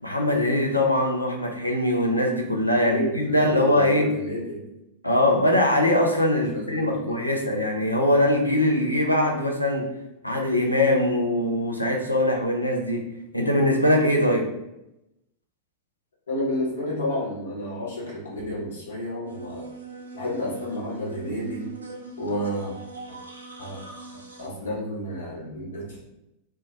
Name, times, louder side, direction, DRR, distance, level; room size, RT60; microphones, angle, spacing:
voice 1, 0.0-4.1 5.0-9.9 10.2-13.0 13.3-14.5, left 1 dB, 85° left, 1 dB, 0.4 m, -22 dB
voice 2, 2.6-4.7 6.3-7.3 16.3-19.7 20.1-21.7 22.2-22.7 23.1-23.2 23.6-23.8 24.4-26.0, left 1 dB, 65° left, -4 dB, 0.9 m, -31 dB
sound 1, 19.3-24.5, right 3 dB, 75° right, 0.4 m, -41 dB
2.1 x 2.1 x 2.9 m, 0.87 s
figure-of-eight pair, 90°, 0 cm